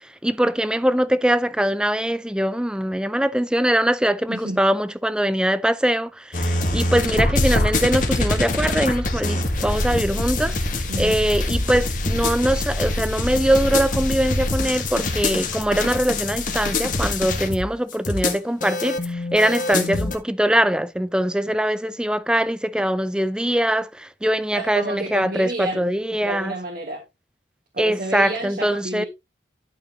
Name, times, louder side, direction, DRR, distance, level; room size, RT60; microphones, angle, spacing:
voice 1, 0.2-26.6 27.8-29.0, right 1 dB, 5° right, 0.5 m, -22 dB
voice 2, 4.3-4.6 10.9-11.2 24.5-25.9 26.2-27.0 27.7-29.1, right 2 dB, 50° right, 1.6 m, -30 dB
sound 1, 6.3-20.2, left 2 dB, 45° left, 1.6 m, -24 dB
11.5 x 6.5 x 3.1 m
head